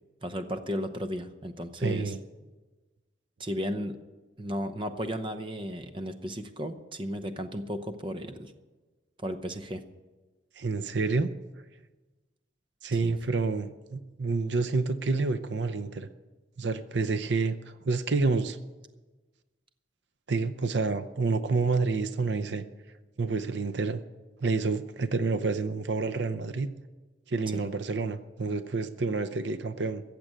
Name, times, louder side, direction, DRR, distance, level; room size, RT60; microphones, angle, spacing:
voice 1, 0.2-2.1 3.4-4.0 4.4-8.5 9.2-9.8 13.0-13.2 27.5-27.6, equal, 25° right, 9 dB, 0.8 m, -34 dB
voice 2, 1.8-2.2 10.6-11.3 12.8-16.1 16.6-18.6 20.3-22.6 23.2-24.0 24.4-26.7 27.3-30.0, right 4 dB, 70° right, 12 dB, 0.6 m, -28 dB
15.0 x 7.7 x 9.0 m, 1.2 s
head